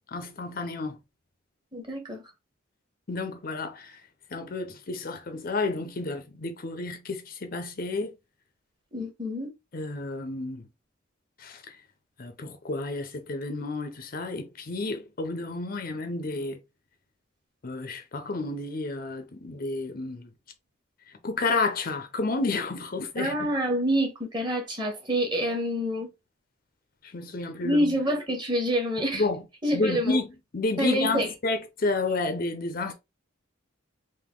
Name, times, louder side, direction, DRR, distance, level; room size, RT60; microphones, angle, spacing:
voice 1, 0.1-1.0 3.1-4.0 4.3-8.2 9.7-10.7 11.4-11.8 12.2-16.6 17.6-20.3 21.2-23.5 27.0-27.9 29.1-29.4 29.7-30.3 30.5-32.9, left 3 dB, 45° left, 0.5 m, -30 dB
voice 2, 1.7-2.2 8.9-9.5 23.2-26.1 27.6-29.2 29.6-30.2 30.8-31.3, equal, 20° right, 1.1 m, -27 dB
3.6 x 2.6 x 3.6 m
head